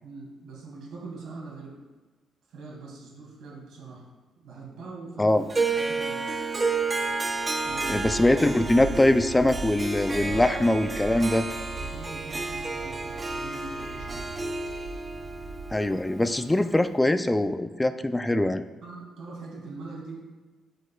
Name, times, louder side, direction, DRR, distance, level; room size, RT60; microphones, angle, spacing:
voice 1, 0.0-1.8 2.5-4.0 4.4-5.3 5.8-6.2 7.6-8.1 10.2-10.4 11.8-14.3 18.8-20.2, right 3 dB, 85° right, -3 dB, 2.4 m, -42 dB
Harp, 5.5-16.8, right 3 dB, 25° right, 0.7 m, -31 dB
sound 1, 7.6-16.0, right 3 dB, 65° right, 1.4 m, -40 dB
voice 2, 7.9-11.5 15.7-18.6, left 1 dB, 10° left, 9 dB, 0.4 m, -22 dB
13.5 x 5.2 x 2.4 m, 1.3 s
cardioid pair, 115°, 0 cm